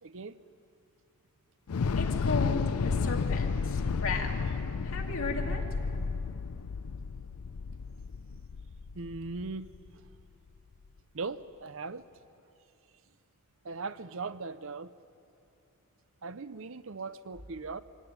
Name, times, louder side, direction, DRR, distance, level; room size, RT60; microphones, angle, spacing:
voice 1, 0.0-0.4 8.9-9.7 11.1-12.1 13.6-14.9 16.2-17.8, right 4 dB, 60° right, 14 dB, 0.7 m, -39 dB
Thunder / Explosion, 1.7-9.9, left 5 dB, 85° left, 0.5 m, -32 dB
voice 2, 2.0-5.6, left 3 dB, 65° left, 1 dB, 2.6 m, -36 dB
24.0 x 17.0 x 9.5 m, 2.7 s
head